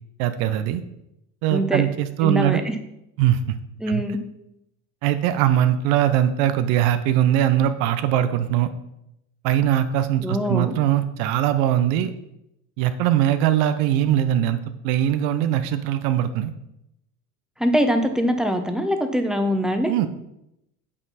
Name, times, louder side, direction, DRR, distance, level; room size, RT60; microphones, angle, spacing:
voice 1, 0.2-0.8 1.4-2.6 3.2-3.6 3.9-4.0 5.0-8.7 9.4-12.1 12.8-16.5 19.9-20.1, right 11 dB, 60° right, 10 dB, 0.8 m, -21 dB
voice 2, 1.5-1.9 2.2-2.7 3.8-4.2 10.2-10.7 17.6-19.9, equal, ahead, 6 dB, 1.0 m, -23 dB
8.6 x 5.2 x 4.2 m, 0.84 s
hypercardioid pair, 80°, 49 cm